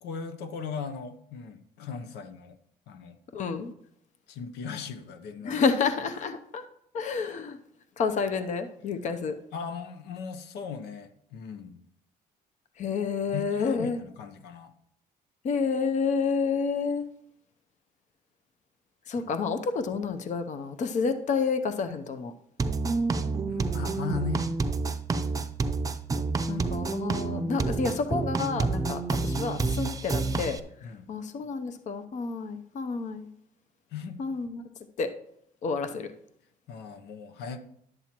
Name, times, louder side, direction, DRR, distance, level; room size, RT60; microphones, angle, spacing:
voice 1, 0.0-2.6 2.9-3.2 4.3-5.6 6.1-6.3 9.5-11.8 13.3-14.7 19.1-19.4 23.5-24.5 26.5-27.1 30.8-31.1 33.9-34.2 36.7-37.6, left 6 dB, 80° left, 9 dB, 0.8 m, -38 dB
voice 2, 3.3-3.7 5.4-6.6 6.9-7.6 8.0-9.3 12.8-14.0 15.4-17.1 19.1-22.3 26.5-33.3 34.2-34.6 35.0-35.1 35.6-36.1, left 5 dB, 45° left, 9 dB, 0.7 m, -29 dB
sound 1, 22.6-30.6, right 3 dB, 20° right, 0.6 m, -28 dB
11.0 x 8.8 x 3.0 m, 0.72 s
cardioid pair, 110°, 17 cm